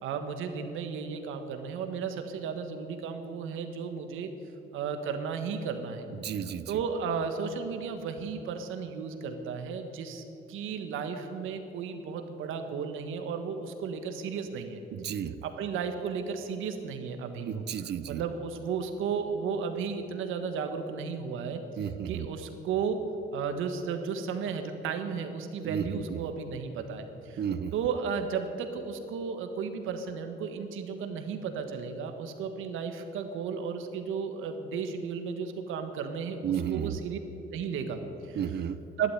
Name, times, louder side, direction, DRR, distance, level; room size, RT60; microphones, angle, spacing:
voice 1, 0.0-4.3 4.7-6.4 6.7-14.8 15.1-17.6 18.1-23.0 23.3-27.4 27.7-37.2 37.5-38.4 39.0-39.1, right 6 dB, 90° right, 7 dB, 1.5 m, -34 dB
voice 2, 6.1-6.7 14.9-15.3 17.5-18.2 21.8-22.3 25.6-26.2 27.4-27.7 36.4-37.0 38.3-38.8, right 8 dB, 60° right, 14 dB, 0.8 m, -32 dB
12.0 x 11.5 x 9.7 m, 2.9 s
cardioid pair, 90°, 20 cm